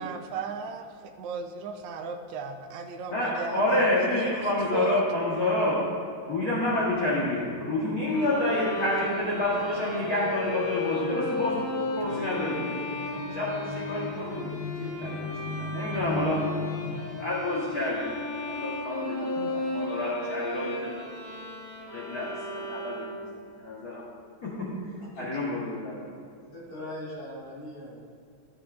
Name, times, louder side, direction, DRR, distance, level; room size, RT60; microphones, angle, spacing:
voice 1, 0.0-5.0 19.4-19.5, right 5 dB, 70° right, 4 dB, 1.3 m, -36 dB
voice 2, 3.1-5.8 6.3-11.6 12.0-20.9 21.9-23.2 23.6-24.0 25.2-26.2, left 1 dB, 50° left, -8 dB, 1.7 m, -29 dB
Bowed string instrument, 8.1-23.4, left 2 dB, 65° left, 2.8 m, -35 dB
voice 3, 26.5-28.0, left 1 dB, 85° left, -7 dB, 3.5 m, -40 dB
13.0 x 8.2 x 2.5 m, 2.4 s
omnidirectional pair, 2.4 m